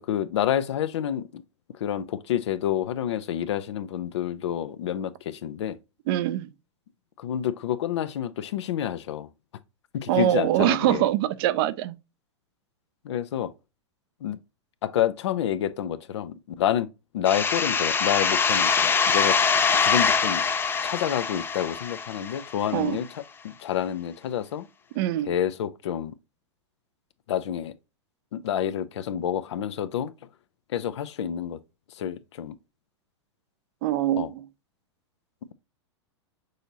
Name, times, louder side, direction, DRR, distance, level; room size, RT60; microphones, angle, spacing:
voice 1, 0.0-1.4 1.7-5.8 7.2-9.3 9.9-11.1 13.0-13.5 14.2-14.4 14.8-16.9 17.1-19.4 19.8-20.5 20.8-24.7 25.2-26.1 27.3-27.7 28.3-30.1 30.7-31.6 31.9-32.6 34.2-34.3, left 10 dB, 70° left, 0.5 m, -28 dB
voice 2, 6.1-6.5 10.1-11.9 22.7-23.0 25.0-25.3 33.8-34.4, right 13 dB, 55° right, 0.5 m, -24 dB
sound 1, 17.2-22.7, left 5 dB, 15° left, 0.4 m, -24 dB
6.4 x 2.7 x 2.8 m
hypercardioid pair, 105°, 15 cm